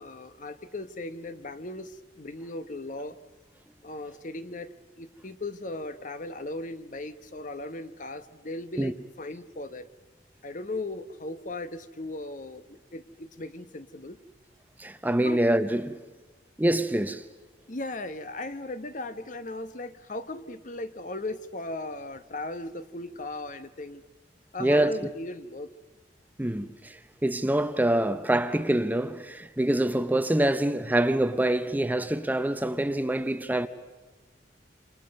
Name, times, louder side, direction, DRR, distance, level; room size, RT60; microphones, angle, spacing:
voice 1, 0.0-3.2 3.8-9.9 10.4-14.2 15.2-15.4 17.7-24.0 24.5-25.7, left 2 dB, 45° left, 1.0 m, -37 dB
voice 2, 14.8-16.0 16.6-17.2 24.6-24.9 26.4-33.7, right 1 dB, 10° right, 0.7 m, -25 dB
28.0 x 27.5 x 5.4 m
head